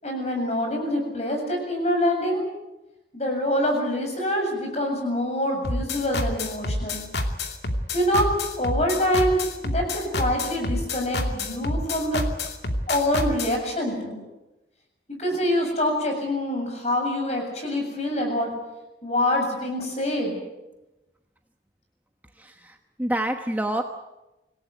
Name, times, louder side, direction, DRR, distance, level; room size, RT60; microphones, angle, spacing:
voice 1, 0.0-2.4 3.1-7.0 7.9-8.3 8.6-12.2 12.9-14.2 15.2-18.5 19.0-20.4, left 1 dB, 40° left, 2 dB, 7.6 m, -25 dB
sound 1, 5.6-13.6, left 2 dB, 75° left, 2.7 m, -28 dB
voice 2, 22.4-23.8, right 1 dB, 10° right, 5 dB, 1.1 m, -28 dB
26.0 x 18.0 x 9.3 m, 1.0 s
head